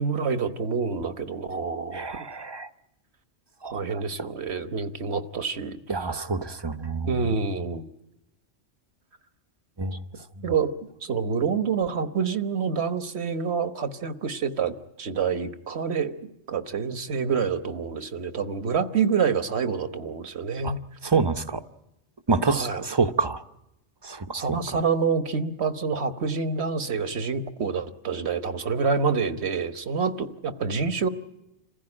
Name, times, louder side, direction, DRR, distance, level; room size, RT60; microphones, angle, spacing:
voice 1, 0.0-2.0 3.7-5.8 7.1-7.8 10.4-10.7 11.0-16.1 16.5-20.8 22.5-22.8 24.3-31.1, right 5 dB, 65° right, 11 dB, 1.5 m, -27 dB
voice 2, 1.9-2.7 3.6-4.0 5.9-7.4 9.8-10.0 10.4-10.5 20.6-20.7 21.0-21.6 22.3-23.4 24.0-24.6, right 4 dB, 25° right, 11 dB, 0.9 m, -27 dB
27.5 x 15.5 x 9.8 m, 0.90 s
omnidirectional pair, 1.2 m